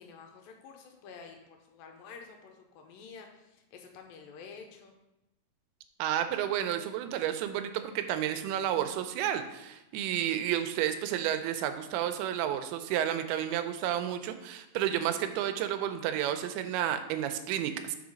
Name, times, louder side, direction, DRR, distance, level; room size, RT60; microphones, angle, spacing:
voice 1, 0.0-4.9, left 5 dB, 80° left, 3 dB, 2.2 m, -50 dB
voice 2, 6.0-18.0, right 10 dB, 90° right, 9 dB, 2.5 m, -31 dB
5.5 x 4.7 x 5.1 m, 0.94 s
omnidirectional pair, 4.5 m